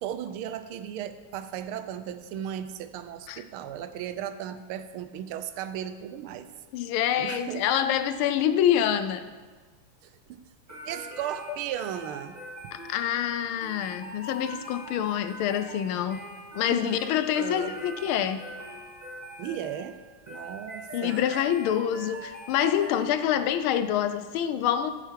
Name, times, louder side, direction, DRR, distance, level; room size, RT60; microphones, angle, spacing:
voice 1, 0.0-6.5 7.2-7.6 10.0-10.4 10.8-12.7 16.7-17.8 19.4-20.0 20.3-21.2, right 10 dB, 90° right, 11 dB, 1.5 m, -36 dB
voice 2, 6.7-9.2 12.7-16.2 16.5-18.4 20.9-24.9, left 10 dB, 80° left, 11 dB, 1.4 m, -26 dB
sound 1, 10.7-23.5, equal, 10° right, 1.9 m, -43 dB
13.5 x 7.0 x 4.6 m, 1.4 s
omnidirectional pair, 2.3 m